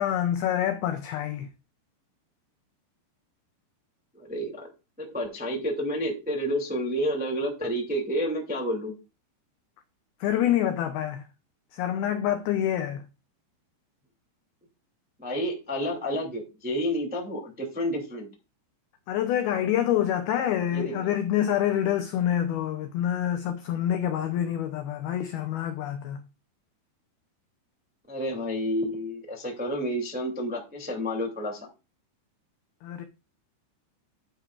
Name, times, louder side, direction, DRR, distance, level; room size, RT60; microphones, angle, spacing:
voice 1, 0.0-1.5 10.2-11.2 11.7-13.0 19.1-26.2 32.8-33.0, left 11 dB, 85° left, 2.2 m, -27 dB
voice 2, 4.1-4.7 5.0-9.0 15.2-18.3 20.7-21.1 28.1-31.7, equal, 5° right, 0.9 m, -30 dB
10.5 x 9.9 x 2.4 m
omnidirectional pair, 5.4 m